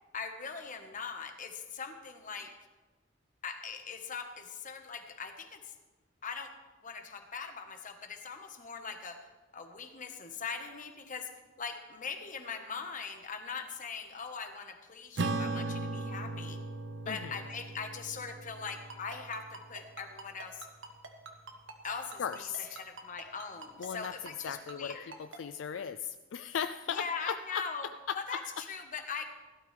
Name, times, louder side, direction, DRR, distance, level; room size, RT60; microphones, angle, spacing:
voice 1, 0.1-2.5 3.4-5.7 6.2-6.5 6.8-11.3 11.6-16.6 17.0-20.7 21.8-25.1 26.9-27.9 28.1-29.2, left 5 dB, 40° left, 6 dB, 1.3 m, -41 dB
Acoustic guitar / Strum, 15.2-19.9, right 2 dB, 60° right, 0.7 m, -38 dB
voice 2, 17.1-17.4 22.2-22.8 23.8-24.1 24.4-27.6 28.1-28.2, left 8 dB, 70° left, 10 dB, 0.4 m, -37 dB
Ringtone, 18.7-25.4, right 3 dB, 80° right, 1.4 m, -45 dB
16.5 x 12.0 x 3.4 m, 1.2 s
head